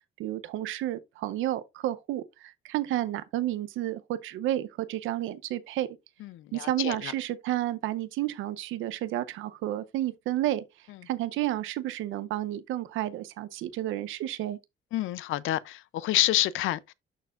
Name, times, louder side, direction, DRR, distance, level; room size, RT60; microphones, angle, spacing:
voice 1, 0.2-5.9 6.5-10.6 11.1-14.6, right 14 dB, 90° right, 0.7 m, -31 dB
voice 2, 6.2-7.1 14.9-16.9, left 15 dB, 85° left, 0.6 m, -28 dB
11.5 x 4.3 x 2.5 m
cardioid pair, 90°, 20 cm